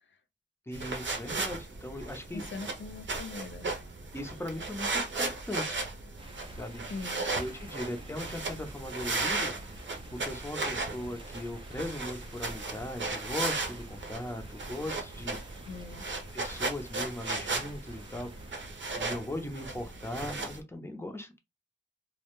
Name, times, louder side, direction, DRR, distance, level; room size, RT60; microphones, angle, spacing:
voice 1, 0.7-2.4 4.1-5.8 6.5-6.8 7.4-9.5 10.1-15.4 16.3-18.3 18.9-21.4, left 1 dB, 10° left, 0.6 m, -38 dB
sound 1, 0.7-20.6, right 3 dB, 75° right, 0.6 m, -36 dB
voice 2, 2.3-3.8 6.9-7.2 15.7-16.0, left 3 dB, 80° left, 0.4 m, -41 dB
sound 2, 6.2-18.5, right 1 dB, 25° right, 0.5 m, -51 dB
2.2 x 2.1 x 2.9 m
wide cardioid pair, 65°, 20 cm